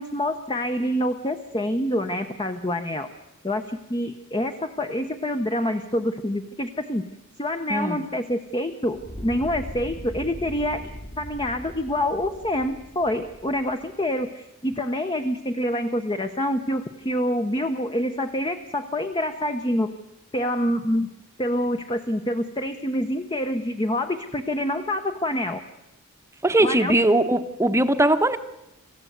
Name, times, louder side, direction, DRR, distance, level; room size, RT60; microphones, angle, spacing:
voice 1, 0.0-3.1 3.4-7.1 7.4-10.9 11.2-19.9 20.3-21.1 21.4-25.6 26.6-26.9, left 1 dB, 20° left, 7 dB, 0.9 m, -26 dB
voice 2, 7.7-8.0 26.4-28.4, right 1 dB, 10° right, 9 dB, 1.0 m, -20 dB
Fire, 8.9-14.1, equal, 40° left, 2.2 m, -40 dB
27.0 x 15.0 x 8.0 m, 0.91 s
head